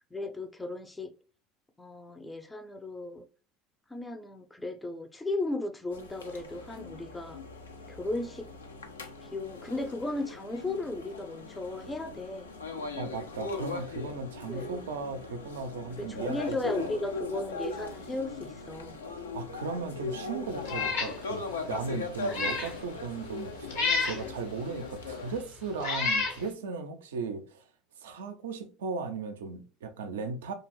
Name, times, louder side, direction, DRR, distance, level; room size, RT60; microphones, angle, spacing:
voice 1, 0.1-1.1 1.8-3.2 3.9-7.4 7.9-8.5 9.2-12.5 14.5-14.8 16.0-19.0, left 2 dB, 10° left, 0.4 m, -35 dB
sound 1, 5.9-25.4, left 3 dB, 90° left, 0.4 m, -39 dB
voice 2, 13.0-16.9 19.3-23.7 24.1-27.6 28.0-30.5, right 4 dB, 80° right, 0.4 m, -37 dB
Meow, 20.6-21.1 21.6-21.7 22.2-22.7 23.7-24.2 25.1-25.2 25.8-26.4, left 4 dB, 70° left, 0.8 m, -29 dB
2.5 x 2.3 x 3.0 m
hypercardioid pair, 75°, 0 cm